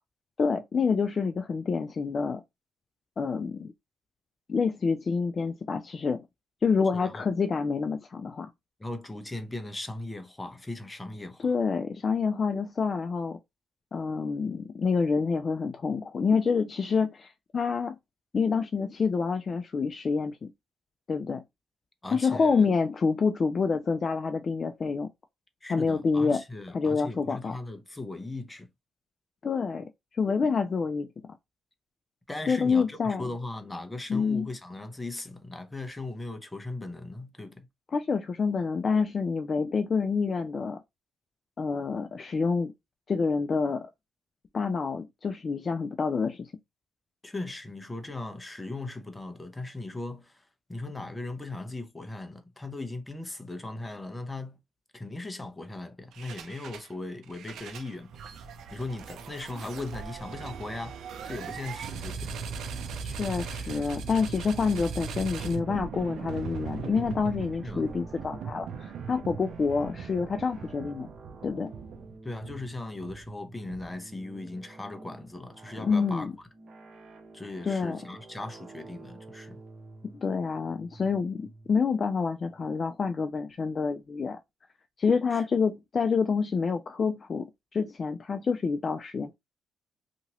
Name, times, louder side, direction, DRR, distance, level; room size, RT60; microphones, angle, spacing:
voice 1, 0.4-2.4 3.2-3.7 4.5-6.2 6.6-8.5 11.4-13.4 13.9-18.0 18.3-20.5 21.1-21.4 22.1-25.1 25.7-26.4 26.7-27.6 29.4-29.9 30.2-31.1 32.5-33.2 34.1-34.5 37.9-40.8 41.6-42.7 43.1-43.9 44.5-46.5 63.0-71.1 71.4-71.7 75.8-76.3 77.6-78.0 80.0-84.4 85.0-87.5 87.7-89.3, left 5 dB, 40° left, 0.3 m, -27 dB
voice 2, 6.9-7.3 8.8-11.6 22.0-22.7 25.6-28.7 32.3-37.7 47.2-54.6 54.9-58.1 58.7-62.3 67.6-67.8 72.2-76.3 77.3-79.6 85.3-85.4, left 2 dB, 15° left, 0.7 m, -38 dB
sound 1, 56.1-56.9 57.2-74.2, right 6 dB, 75° right, 0.5 m, -39 dB
sound 2, 67.5-84.1, right 3 dB, 60° right, 1.1 m, -50 dB
2.8 x 2.6 x 2.8 m
cardioid pair, 90°, 0 cm